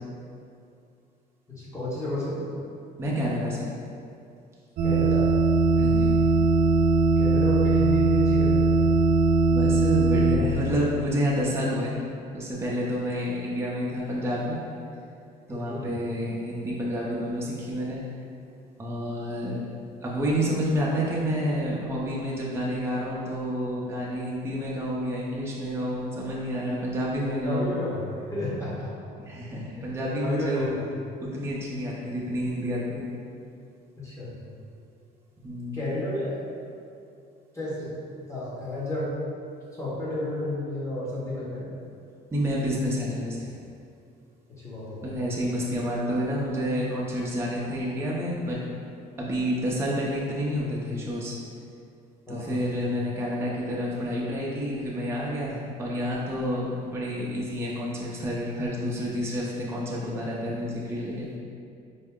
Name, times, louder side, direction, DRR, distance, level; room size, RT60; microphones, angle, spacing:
voice 1, 1.5-2.4 4.8-5.3 7.2-8.7 15.5-15.9 27.4-28.9 29.7-29.8 30.1-30.7 34.0-34.4 35.7-36.4 37.5-37.9 38.3-39.1 39.8-41.7 44.6-45.0 52.3-52.7, left 1 dB, 15° left, -9 dB, 1.3 m, -32 dB
voice 2, 3.0-3.7 5.8-6.2 9.5-12.0 12.3-14.6 15.5-18.1 18.8-19.7 20.0-27.7 29.2-30.7 31.2-33.1 35.4-35.8 42.3-43.5 45.0-48.7 49.2-51.4 52.3-61.4, equal, 15° right, -5 dB, 0.6 m, -29 dB
sound 1, 4.8-10.4, right 3 dB, 60° right, 0.5 m, -20 dB
4.4 x 2.0 x 3.6 m, 2.4 s
cardioid pair, 110°, 17 cm